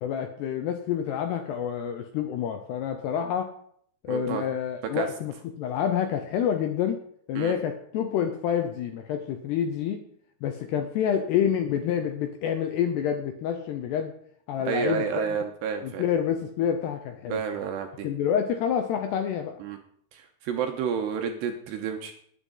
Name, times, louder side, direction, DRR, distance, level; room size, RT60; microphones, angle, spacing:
voice 1, 0.0-3.5 4.0-7.0 7.3-10.0 10.4-14.1 14.5-15.4 15.8-17.4 18.0-19.6, left 8 dB, 80° left, 6 dB, 2.5 m, -28 dB
voice 2, 4.1-4.4 4.9-5.1 7.4-7.5 14.6-16.1 17.3-18.1 19.6-19.8 20.1-22.1, right 7 dB, 75° right, 5 dB, 2.7 m, -30 dB
19.5 x 10.0 x 3.9 m, 0.65 s
omnidirectional pair, 5.7 m